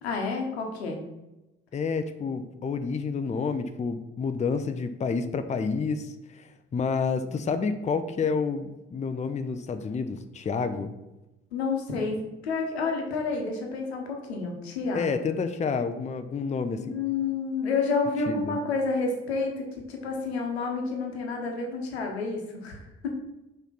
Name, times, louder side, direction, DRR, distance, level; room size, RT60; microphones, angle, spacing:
voice 1, 0.0-1.0 11.5-15.1 16.8-23.1, left 4 dB, 80° left, 2 dB, 1.0 m, -30 dB
voice 2, 1.7-10.9 14.9-17.0 18.3-18.6, left 5 dB, 20° left, 9 dB, 0.6 m, -29 dB
5.7 x 4.4 x 5.5 m, 1.0 s
figure-of-eight pair, 40°, 32 cm